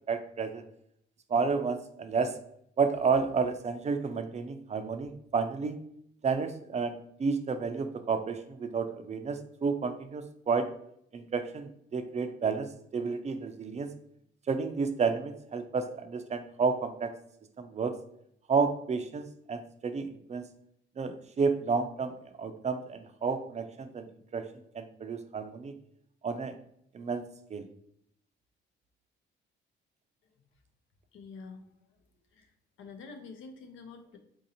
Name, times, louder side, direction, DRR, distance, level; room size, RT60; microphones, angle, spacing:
voice 1, 0.1-0.6 1.3-2.3 2.8-5.8 6.2-10.7 11.1-13.9 14.5-17.1 17.6-18.0 18.5-20.5 21.0-22.1 22.4-24.1 24.3-24.4 24.7-25.7 26.2-26.5 26.9-27.2 27.5-27.6, right 5 dB, 35° right, 8 dB, 0.4 m, -31 dB
voice 2, 31.1-31.6 32.3-32.5 32.8-34.2, left 4 dB, 80° left, 5 dB, 0.7 m, -46 dB
3.9 x 2.6 x 2.8 m, 0.71 s
cardioid pair, 90°, 20 cm